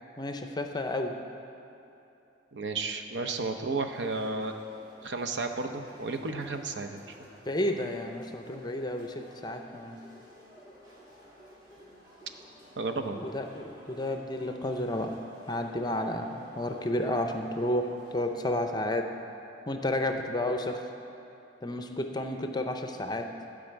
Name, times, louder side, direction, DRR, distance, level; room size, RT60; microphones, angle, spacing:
voice 1, 0.2-1.2 7.5-9.1 9.4-10.0 13.1-15.1 15.5-19.1 19.7-20.8 21.6-23.3, left 1 dB, 25° left, 5 dB, 0.6 m, -31 dB
voice 2, 2.5-4.5 5.0-7.2 12.8-13.2, right 3 dB, 75° right, 6 dB, 0.7 m, -33 dB
sound 1, 3.7-18.5, equal, 25° right, 2.5 m, -53 dB
12.5 x 5.1 x 8.0 m, 2.9 s
head